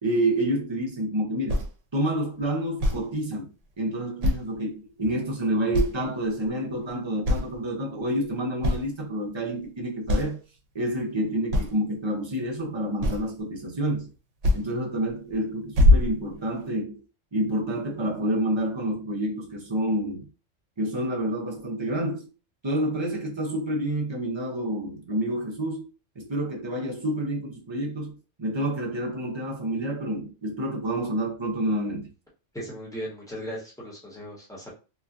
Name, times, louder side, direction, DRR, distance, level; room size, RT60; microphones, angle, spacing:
voice 1, 0.0-1.6 1.9-10.4 10.7-14.1 14.5-17.0 17.3-20.3 20.8-22.3 22.6-25.9 26.2-32.1, right 1 dB, 30° right, 0.5 m, -28 dB
sound 1, 1.5-1.7 2.8-3.0 4.2-4.6 5.0-5.1 5.7-6.1 6.5-6.9 7.2-7.6 8.2-8.3 8.6-8.9 9.6-9.7 10.1-10.3 11.5-11.8 13.0-13.4 14.4-14.6 15.1-15.3 15.7-16.7, left 1 dB, 80° right, 1.0 m, -22 dB
voice 2, 32.5-34.7, equal, 5° left, 1.0 m, -37 dB
2.9 x 2.3 x 2.4 m
omnidirectional pair, 1.2 m